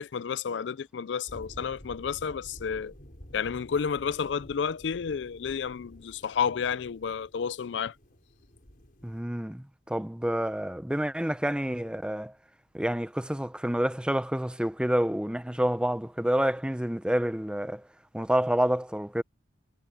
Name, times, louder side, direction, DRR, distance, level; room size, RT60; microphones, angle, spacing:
voice 1, 0.0-2.9 3.3-7.9, left 6 dB, 85° left, 0.4 m, -31 dB
sound 1, 1.3-9.2, equal, 55° left, 5.5 m, -50 dB
voice 2, 9.0-12.3 12.7-17.8 18.1-19.2, equal, 5° right, 0.6 m, -28 dB
head